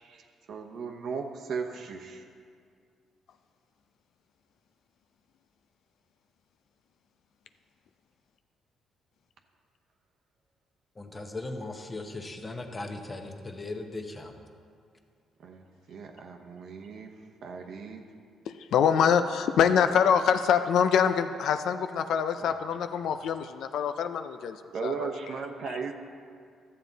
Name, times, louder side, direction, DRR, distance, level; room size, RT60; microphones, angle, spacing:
voice 1, 0.0-2.2 15.4-17.1 17.4-18.0 22.4-22.5 24.7-26.0, right 5 dB, 65° right, 4 dB, 0.9 m, -37 dB
voice 2, 11.0-14.3, left 2 dB, 25° left, 4 dB, 1.0 m, -38 dB
voice 3, 18.5-24.6 24.8-25.1, left 7 dB, 75° left, 9 dB, 0.4 m, -25 dB
13.0 x 7.5 x 4.0 m, 2.3 s
cardioid pair, 90°, 0 cm